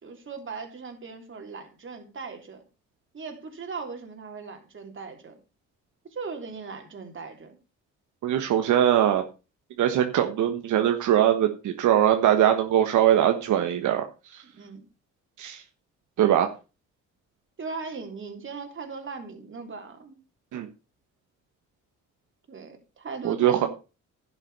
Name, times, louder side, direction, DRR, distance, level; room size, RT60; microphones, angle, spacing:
voice 1, 0.0-2.6 3.1-5.4 6.1-7.6 14.4-14.8 17.6-20.2 22.5-23.7, right 4 dB, 40° right, 4 dB, 3.3 m, -38 dB
voice 2, 8.2-9.2 9.8-14.0 14.3-14.4 15.4-15.6 16.2-16.5 20.5-20.7 23.2-23.7, right 11 dB, 80° right, 5 dB, 1.3 m, -21 dB
11.0 x 7.3 x 5.5 m, 0.31 s
cardioid pair, 90°, 30 cm